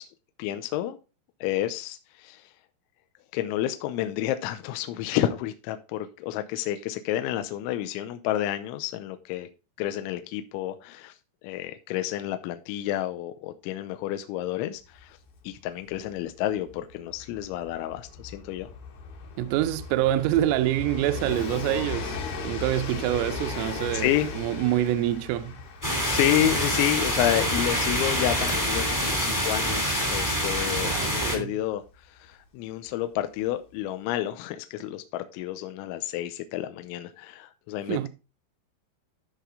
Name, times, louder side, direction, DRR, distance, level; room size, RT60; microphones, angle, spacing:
voice 1, 0.4-1.0 1.4-2.4 3.3-9.5 9.8-11.1 11.4-15.2 15.4-18.7 23.9-24.3 26.0-31.8 32.2-38.1, left 12 dB, 85° left, 2.8 m, -30 dB
Train, 15.0-15.1 15.3-31.9 32.9-33.0, left 4 dB, 60° left, 3.4 m, -38 dB
voice 2, 19.4-25.6 30.8-31.5 37.9-38.1, right 13 dB, 85° right, 3.0 m, -26 dB
sound 1, 25.8-31.4, equal, 15° left, 0.6 m, -26 dB
13.0 x 4.8 x 3.7 m
omnidirectional pair, 5.9 m